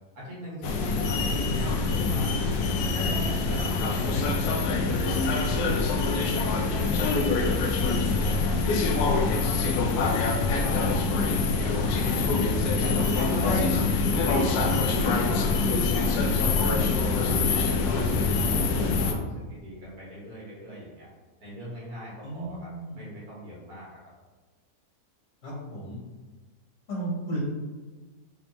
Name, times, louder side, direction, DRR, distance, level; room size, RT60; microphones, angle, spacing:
voice 1, 0.1-4.5 4.9-8.6 8.9-10.2 10.6-12.3 12.8-13.6 14.2-18.5 18.8-21.1 21.4-22.7 22.9-24.0, equal, 80° right, -6 dB, 2.1 m, -40 dB
sound 1, 0.6-19.1, left 3 dB, 90° left, 1.2 m, -25 dB
voice 2, 13.5-13.8 22.2-23.0 25.4-26.0 26.9-27.4, equal, 45° left, -7 dB, 1.9 m, -33 dB
5.2 x 3.5 x 2.9 m, 1.3 s
omnidirectional pair, 1.6 m